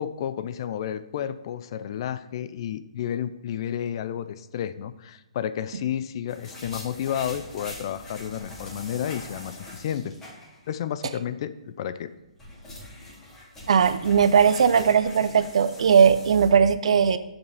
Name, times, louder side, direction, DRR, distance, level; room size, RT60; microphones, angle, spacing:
voice 1, 0.0-10.1 10.7-12.1, left 9 dB, 45° left, 13 dB, 0.5 m, -31 dB
sound 1, 6.3-10.8 11.1-11.2 12.1-16.5, left 1 dB, 15° left, 2.1 m, -43 dB
voice 2, 13.7-17.2, right 7 dB, 65° right, 13 dB, 0.5 m, -19 dB
7.0 x 5.2 x 5.6 m, 1.0 s
hypercardioid pair, 135°, 3 cm